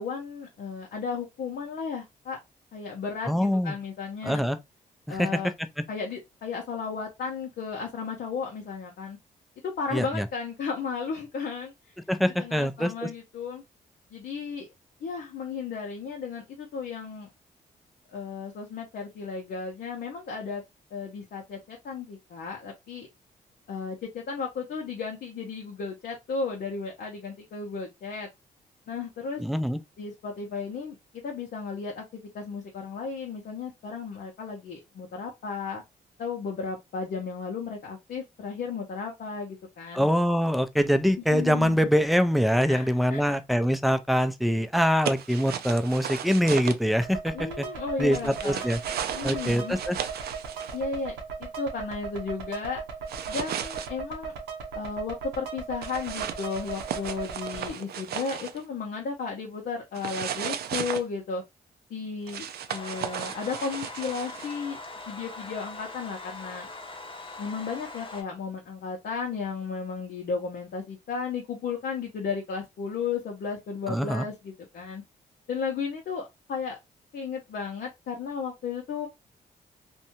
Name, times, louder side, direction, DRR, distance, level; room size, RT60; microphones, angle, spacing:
voice 1, 0.0-2.4 2.7-4.5 5.1-5.5 5.9-9.2 9.8-11.9 12.4-13.6 14.1-14.7 15.0-17.3 18.1-20.6 20.9-23.1 23.7-28.3 28.9-29.4 30.0-31.0 31.2-35.8 36.2-40.1 41.3-41.9 42.7-43.3 47.3-48.7 49.1-49.8 50.7-52.8 53.3-54.3 54.7-61.4 61.9-64.8 65.1-66.7 67.4-75.0 75.5-76.8 77.1-79.1, left 5 dB, 65° left, 0.7 m, -34 dB
voice 2, 3.2-3.8 4.2-4.6 5.1-5.5 9.9-10.3 12.1-13.1 29.4-29.8 39.9-47.7 48.0-48.8 49.2-50.0 73.9-74.2, equal, ahead, 0.4 m, -24 dB
sound 1, 45.0-46.8 48.1-50.8 53.1-53.9 55.8-58.6 59.9-61.0 62.3-64.6, right 9 dB, 65° right, 0.4 m, -35 dB
sound 2, 47.0-57.7, right 5 dB, 90° right, 0.7 m, -38 dB
sound 3, 62.7-68.2, left 2 dB, 30° left, 0.8 m, -42 dB
2.6 x 2.2 x 2.8 m
supercardioid pair, 60°, 18 cm